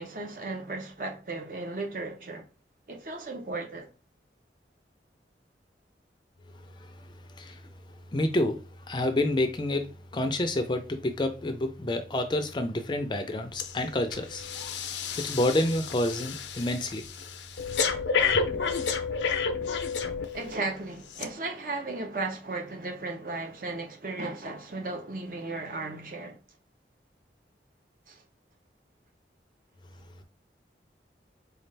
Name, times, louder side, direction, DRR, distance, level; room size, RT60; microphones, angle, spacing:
voice 1, 0.0-2.4 2.9-3.9 20.3-26.4 28.1-28.2, right 3 dB, 50° right, 0.7 m, -35 dB
voice 2, 8.1-14.5 15.2-17.1 18.3-18.4, left 1 dB, 25° left, 0.4 m, -28 dB
Breathing, 13.6-13.8 14.1-20.6 21.1-21.2, left 5 dB, 85° left, 0.5 m, -30 dB
4.1 x 2.3 x 3.3 m
head